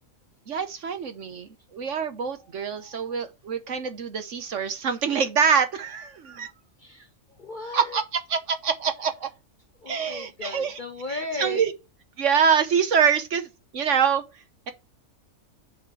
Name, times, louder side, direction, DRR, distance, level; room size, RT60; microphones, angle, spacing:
voice 1, 0.5-6.5 7.7-9.3 9.8-10.8 11.1-11.7 12.2-14.7, right 7 dB, 55° right, 1.2 m, -25 dB
voice 2, 6.8-8.0 9.8-11.6, left 2 dB, 40° left, 0.8 m, -36 dB
6.7 x 4.3 x 5.8 m
omnidirectional pair, 1.6 m